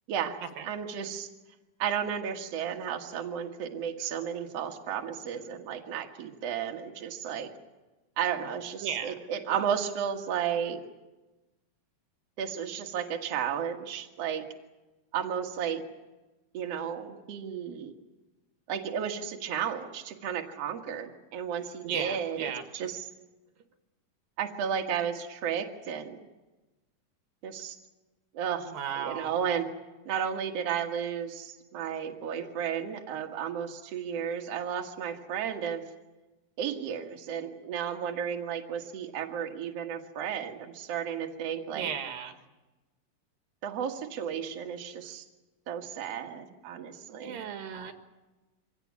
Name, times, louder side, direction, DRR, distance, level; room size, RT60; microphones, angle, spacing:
voice 1, 0.7-1.3 1.8-7.5 8.2-10.8 12.4-14.5 15.1-15.9 16.5-17.9 18.7-23.0 24.4-26.2 27.4-27.8 28.3-29.7 30.1-35.9 36.6-41.9 43.6-45.2 45.7-47.4, right 8 dB, 55° right, 3 dB, 2.4 m, -33 dB
voice 2, 8.8-9.2 21.8-22.6 28.6-29.3 41.7-42.4 47.1-47.9, right 8 dB, 85° right, 7 dB, 3.4 m, -35 dB
25.0 x 17.0 x 9.6 m, 1.1 s
omnidirectional pair, 3.9 m